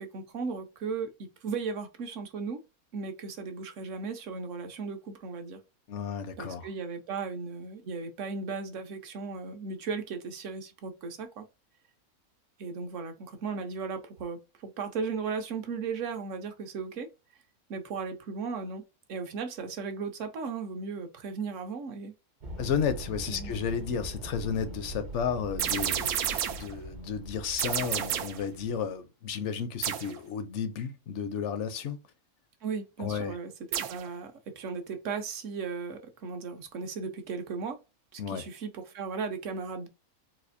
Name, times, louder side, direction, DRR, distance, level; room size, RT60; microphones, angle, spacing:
voice 1, 0.0-2.6 2.9-5.6 6.4-11.4 12.6-17.1 17.7-18.8 19.1-22.1 23.3-23.5 32.6-37.8 38.1-39.9, right 5 dB, 60° right, 1.0 m, -36 dB
voice 2, 5.9-6.7 22.6-32.0 33.0-33.4 38.2-38.4, left 7 dB, 65° left, 0.8 m, -33 dB
sound 1, 22.4-28.9, right 1 dB, 45° right, 0.7 m, -42 dB
sound 2, 25.6-26.7 27.6-28.5 29.8-30.2 33.7-34.1, right 10 dB, 85° right, 1.1 m, -30 dB
4.2 x 2.4 x 2.5 m
omnidirectional pair, 1.6 m